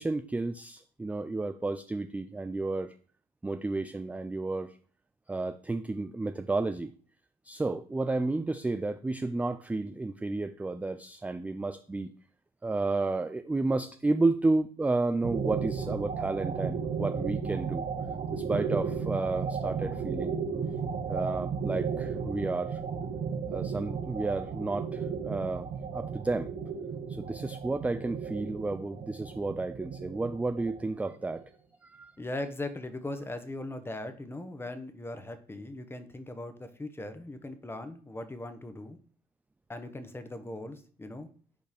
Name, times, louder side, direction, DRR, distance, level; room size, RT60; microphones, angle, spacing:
voice 1, 0.0-2.9 3.4-4.8 5.3-6.9 7.4-12.1 12.6-17.8 18.3-20.4 21.1-22.8 23.5-26.5 27.1-31.4 31.8-32.1, right 2 dB, 10° right, 9 dB, 0.3 m, -31 dB
sound 1, 15.2-31.3, right 6 dB, 55° right, 1.2 m, -34 dB
voice 2, 32.2-39.0 39.7-41.3, left 2 dB, 15° left, 9 dB, 0.9 m, -39 dB
5.3 x 4.4 x 5.0 m, 0.43 s
cardioid pair, 110°, 17 cm